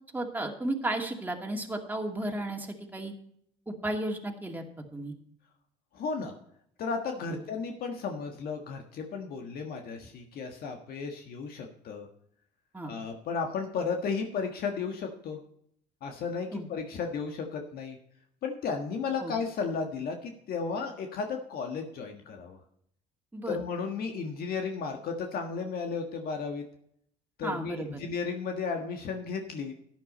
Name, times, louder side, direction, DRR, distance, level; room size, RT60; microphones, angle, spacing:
voice 1, 0.1-3.1 3.7-4.6 4.9-5.1 7.3-7.4 12.7-12.9 16.5-16.7 19.2-19.3 23.3-23.6 27.4-27.9, right 1 dB, 10° right, 2 dB, 2.4 m, -33 dB
voice 2, 5.9-6.3 6.8-12.1 12.8-15.4 16.0-18.0 18.4-22.6 23.5-26.6 27.4-29.7, left 5 dB, 60° left, 3 dB, 1.6 m, -34 dB
12.0 x 9.6 x 4.3 m, 0.68 s
supercardioid pair, 80°, 17 cm